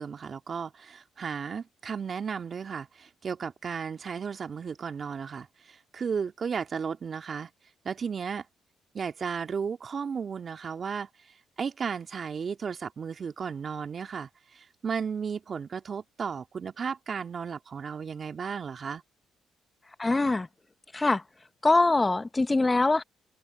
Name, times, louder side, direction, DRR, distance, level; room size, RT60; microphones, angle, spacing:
voice 1, 0.0-7.5 7.8-8.4 8.9-11.1 11.6-19.0, right 6 dB, 50° right, 2.2 m, -34 dB
voice 2, 20.0-20.5 20.9-21.2 21.6-23.0, left 2 dB, 25° left, 0.8 m, -23 dB
open air
supercardioid pair, 55°, 0 cm